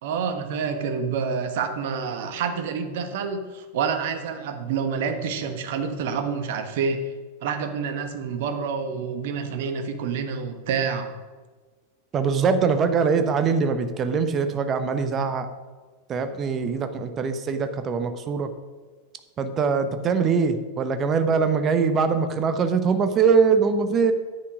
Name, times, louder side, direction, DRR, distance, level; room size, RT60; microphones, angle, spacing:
voice 1, 0.0-7.1 7.4-11.1, right 6 dB, 50° right, 7 dB, 1.2 m, -28 dB
voice 2, 12.1-15.5 16.1-18.5 19.4-24.1, right 5 dB, 25° right, 9 dB, 1.0 m, -22 dB
9.9 x 8.8 x 5.0 m, 1.4 s
figure-of-eight pair, 90°, 0 cm